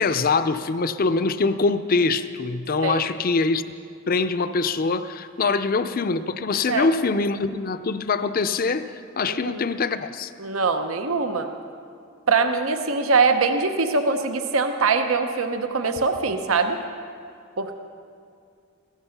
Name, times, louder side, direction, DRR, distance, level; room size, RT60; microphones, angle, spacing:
voice 1, 0.0-3.6 4.1-10.3, left 4 dB, 45° left, 11 dB, 0.5 m, -23 dB
voice 2, 9.3-9.7 10.4-11.5 12.3-16.8 17.6-17.8, right 4 dB, 85° right, 6 dB, 0.9 m, -23 dB
15.5 x 15.5 x 5.9 m, 2.4 s
head